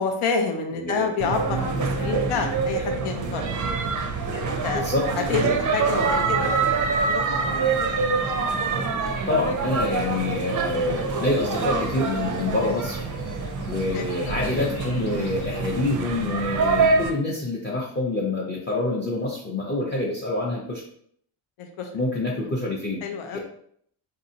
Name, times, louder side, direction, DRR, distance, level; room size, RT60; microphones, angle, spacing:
voice 1, 0.0-3.5 4.3-4.8 5.2-8.0 13.9-14.1 21.6-21.9 23.0-23.4, left 5 dB, 90° left, 4 dB, 0.7 m, -29 dB
voice 2, 0.7-1.1 4.7-5.1 5.4-5.6 5.9-6.1 9.3-13.0 13.7-20.8 21.9-23.0 23.3-23.4, left 2 dB, 20° left, -4 dB, 0.5 m, -26 dB
sound 1, 1.2-17.1, right 4 dB, 40° right, 0.4 m, -25 dB
sound 2, 4.9-15.7, left 3 dB, 50° left, 0.7 m, -44 dB
4.1 x 2.7 x 2.7 m, 0.65 s
cardioid pair, 140°, 49 cm